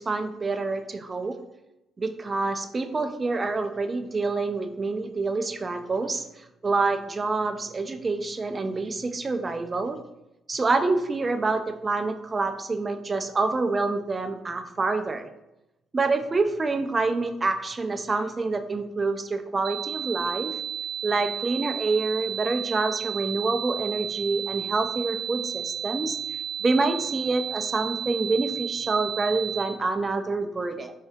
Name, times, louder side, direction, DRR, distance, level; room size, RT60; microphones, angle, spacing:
voice 1, 0.0-1.4 2.0-10.0 10.5-15.3 15.9-20.5 21.0-26.2 26.6-30.9, right 3 dB, 30° right, 8 dB, 0.4 m, -27 dB
sound 1, 19.6-29.6, right 9 dB, 45° right, 0.8 m, -33 dB
4.5 x 2.6 x 3.5 m, 0.92 s
cardioid pair, 90°, 0 cm